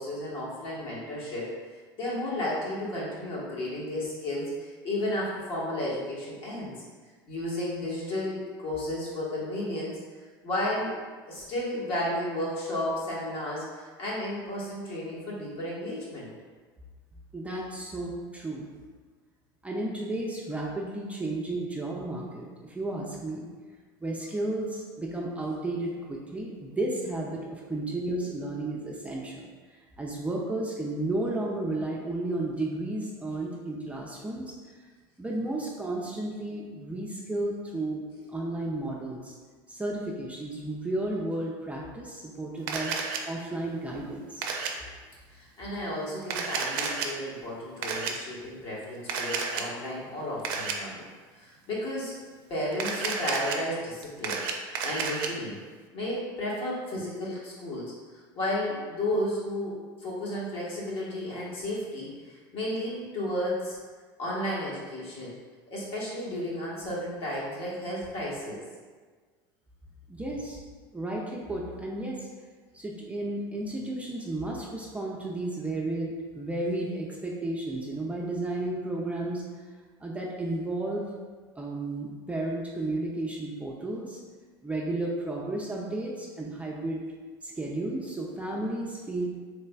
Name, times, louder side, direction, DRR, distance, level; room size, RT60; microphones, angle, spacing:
voice 1, 0.0-1.5 2.0-6.8 7.3-9.9 10.4-10.9 11.3-16.3 45.3-51.1 51.3-52.2 52.5-55.6 55.9-57.9 58.3-63.8 64.2-65.4 65.7-68.6, left 1 dB, 55° left, -6 dB, 1.3 m, -33 dB
voice 2, 17.3-18.7 19.6-23.5 24.0-34.9 35.2-39.3 39.7-43.0 43.2-44.4 70.1-70.6 70.9-72.3 72.7-79.4 80.0-81.1 81.6-84.2 84.6-87.0 87.4-89.3, right 2 dB, 10° right, -3 dB, 0.5 m, -33 dB
Camera, 42.7-43.2 44.4-44.7 46.2-47.1 47.8-48.1 49.1-49.7 50.4-50.8 52.7-53.6 54.0-55.3, right 5 dB, 75° right, 0.4 m, -31 dB
3.3 x 3.1 x 2.3 m, 1.5 s
hypercardioid pair, 90°, 12 cm